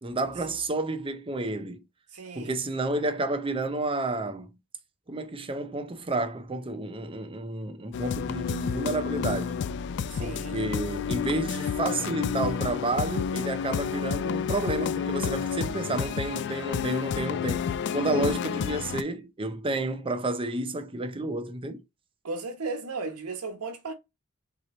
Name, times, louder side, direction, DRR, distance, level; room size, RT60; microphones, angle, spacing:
voice 1, 0.0-1.8 2.4-4.5 5.1-9.6 10.2-17.6 17.9-21.8, right 2 dB, 25° right, 0.6 m, -30 dB
voice 2, 2.1-2.5 10.1-10.6 22.2-23.9, right 3 dB, 85° right, 1.0 m, -35 dB
sound 1, 7.9-19.0, left 7 dB, 50° left, 0.3 m, -30 dB
3.8 x 2.9 x 4.2 m
head